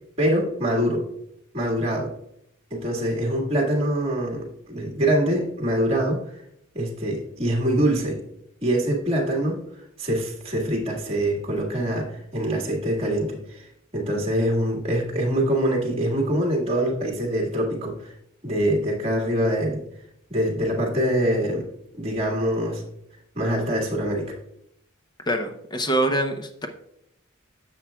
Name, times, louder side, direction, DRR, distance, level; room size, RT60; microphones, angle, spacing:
voice 1, 0.2-1.0 1.5-2.1 2.7-6.2 6.7-8.2 8.6-9.6 10.0-13.7 13.9-18.1 18.4-19.8 20.3-21.7 22.0-22.8 23.4-24.4, right 1 dB, 30° right, -2 dB, 1.8 m, -24 dB
voice 2, 25.3-26.7, right 1 dB, 20° left, 5 dB, 0.7 m, -24 dB
10.5 x 7.2 x 2.3 m, 0.76 s
head